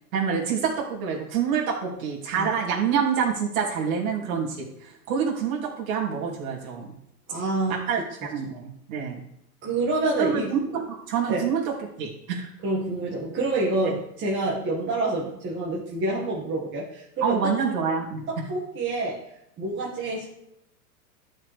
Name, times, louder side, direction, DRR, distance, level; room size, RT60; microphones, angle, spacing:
voice 1, 0.1-6.9 7.7-9.2 10.2-12.5 13.8-13.9 17.2-18.2, right 7 dB, 65° right, -3 dB, 3.3 m, -27 dB
voice 2, 7.3-8.1 9.6-10.5 11.3-11.5 12.6-17.6 18.3-19.3 19.6-20.3, right 2 dB, 25° right, -4 dB, 1.9 m, -27 dB
12.5 x 6.2 x 3.5 m, 0.78 s
hypercardioid pair, 125°, 46 cm